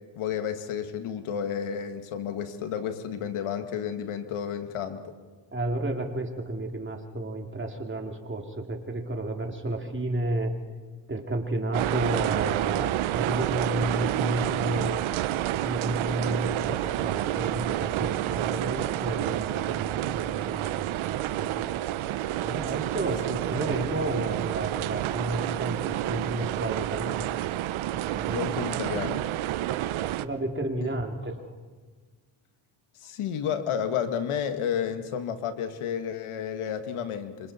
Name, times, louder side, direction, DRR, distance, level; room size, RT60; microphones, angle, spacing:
voice 1, 0.2-5.1 28.3-29.3 33.0-37.5, left 8 dB, 75° left, 8 dB, 1.8 m, -31 dB
voice 2, 5.5-10.5 11.1-15.1 15.6-21.7 22.4-27.3 27.9-28.5 28.9-29.0 30.2-31.4, right 1 dB, 25° right, 3 dB, 2.9 m, -32 dB
sound 1, 11.7-30.3, right 13 dB, 70° right, 0.8 m, -29 dB
26.5 x 26.5 x 4.3 m, 1.5 s
cardioid pair, 85°, 50 cm